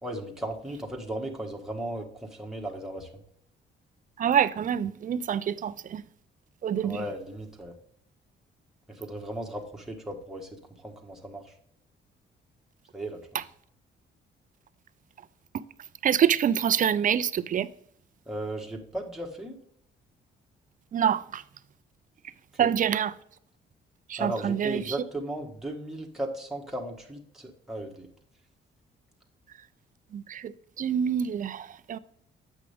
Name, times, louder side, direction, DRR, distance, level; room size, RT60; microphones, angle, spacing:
voice 1, 0.0-3.1 6.8-7.7 8.9-10.5 10.8-11.5 12.9-13.2 18.3-19.5 22.5-22.7 24.2-28.1, right 1 dB, ahead, 1.4 m, -36 dB
voice 2, 4.2-6.0 6.6-7.0 13.3-13.4 15.5-15.6 16.0-17.7 20.9-21.4 22.6-23.2 24.1-25.0 30.1-32.0, right 9 dB, 40° right, 0.4 m, -26 dB
8.2 x 6.0 x 3.5 m
cardioid pair, 90°, 20 cm